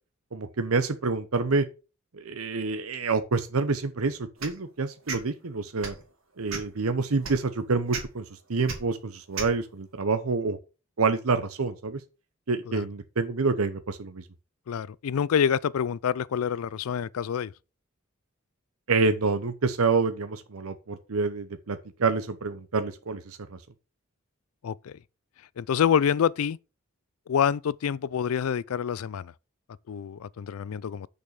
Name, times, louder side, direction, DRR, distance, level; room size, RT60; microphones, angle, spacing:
voice 1, 0.3-1.7 2.1-5.9 6.4-8.2 8.5-10.6 11.0-12.0 12.5-14.2 18.9-23.4, right 4 dB, 85° right, 0.8 m, -27 dB
sound 1, 4.4-4.6 5.1-5.2 5.8-6.0 6.5-6.8 7.2-7.4 7.9-8.0 8.7-8.8 9.3-9.5, right 5 dB, 70° right, 2.6 m, -33 dB
voice 2, 14.7-17.5 24.6-25.0 25.6-26.6 27.3-29.3 29.9-31.1, left 8 dB, 85° left, 0.4 m, -27 dB
6.8 x 5.4 x 6.4 m
head